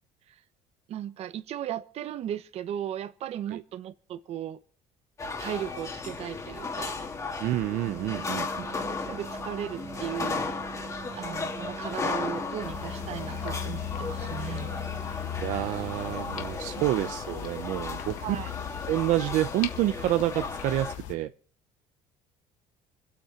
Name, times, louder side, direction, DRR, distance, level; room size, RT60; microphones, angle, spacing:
voice 1, 0.9-4.6 5.4-6.9 8.8-10.6 11.1-14.7 16.7-16.9 18.2-18.5, right 10 dB, 50° right, 1.2 m, -36 dB
sound 1, 5.2-21.0, left 4 dB, 25° left, 2.1 m, -35 dB
voice 2, 7.4-8.7 15.4-18.4 18.9-21.3, right 14 dB, 70° right, 0.7 m, -28 dB
sound 2, 7.9-16.0, right 6 dB, 25° right, 2.2 m, -44 dB
sound 3, 12.6-21.1, left 13 dB, 70° left, 1.8 m, -38 dB
25.5 x 8.7 x 5.7 m
cardioid pair, 145°, 13 cm